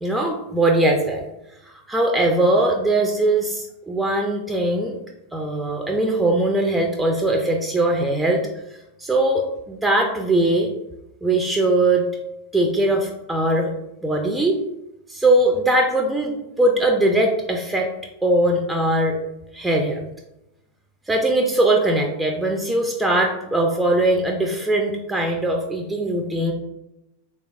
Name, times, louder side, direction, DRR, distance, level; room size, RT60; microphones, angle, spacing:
voice 1, 0.0-1.3 1.6-5.0 5.3-8.4 8.7-10.7 11.2-12.1 12.5-13.7 14.0-14.6 15.1-17.9 18.2-19.2 19.5-20.0 21.1-26.5, right 1 dB, 5° right, 1 dB, 0.3 m, -20 dB
3.3 x 2.3 x 3.1 m, 0.90 s
figure-of-eight pair, 90°, 0 cm